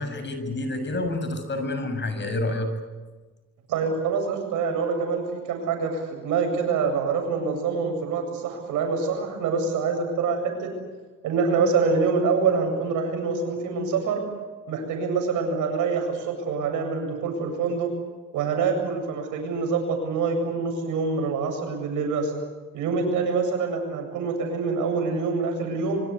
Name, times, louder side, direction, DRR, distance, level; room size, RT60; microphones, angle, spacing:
voice 1, 0.0-2.7, left 2 dB, 35° left, 8 dB, 6.8 m, -28 dB
voice 2, 3.7-10.7 11.2-14.2 14.7-17.9 18.3-22.3 22.7-26.0, right 5 dB, 90° right, 4 dB, 7.8 m, -25 dB
26.0 x 24.5 x 8.6 m, 1.3 s
cardioid pair, 90°, 30 cm